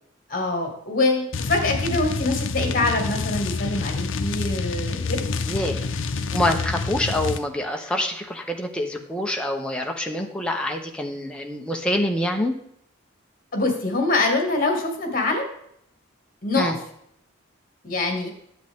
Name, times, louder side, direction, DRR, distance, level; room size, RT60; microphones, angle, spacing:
voice 1, 0.3-5.3 13.5-15.5 16.4-16.8 17.8-18.3, left 2 dB, 45° left, 2 dB, 2.1 m, -24 dB
sound 1, 1.3-7.4, left 4 dB, 75° left, 0.6 m, -27 dB
voice 2, 6.3-12.6 16.5-16.8, left 1 dB, 5° left, 2 dB, 0.8 m, -26 dB
10.0 x 7.7 x 3.6 m, 0.72 s
head